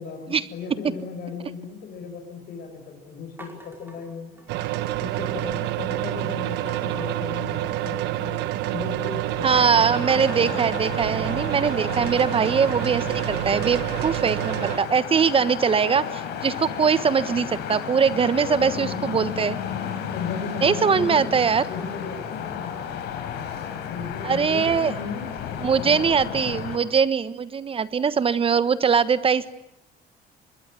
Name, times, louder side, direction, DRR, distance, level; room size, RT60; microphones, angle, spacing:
voice 1, 0.0-4.5 5.0-10.5 11.8-12.1 18.1-18.2 18.5-19.3 19.9-22.9 23.9-26.5, left 5 dB, 60° left, 2 dB, 6.3 m, -37 dB
sound 1, 3.4-4.9 5.3-5.8 6.7-8.2 8.5-9.1 9.5-9.6 10.1-12.2 13.6-16.4 16.8-19.7, right 1 dB, 10° right, 5.3 m, -50 dB
sound 2, 4.5-14.8, right 15 dB, 90° right, 1.2 m, -28 dB
voice 2, 9.4-19.6 20.6-21.6 24.2-24.9 25.6-29.5, right 6 dB, 35° right, 15 dB, 1.3 m, -22 dB
sound 3, 9.9-26.8, left 8 dB, 80° left, 4.6 m, -33 dB
25.5 x 21.5 x 9.8 m, 0.80 s
cardioid pair, 110°, 17 cm